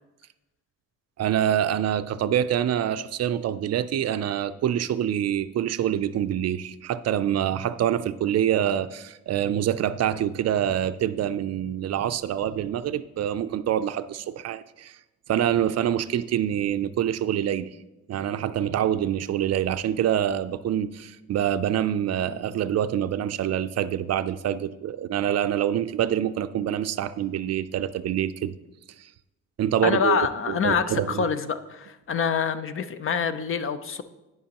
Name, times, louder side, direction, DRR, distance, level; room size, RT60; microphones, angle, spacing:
voice 1, 1.2-15.0 15.3-17.7 18.1-28.5 29.6-30.2 30.5-31.2, right 10 dB, 55° right, 12 dB, 0.4 m, -26 dB
voice 2, 29.8-34.0, left 6 dB, 45° left, 11 dB, 0.6 m, -26 dB
11.0 x 9.4 x 2.9 m, 0.99 s
cardioid pair, 130°, 30 cm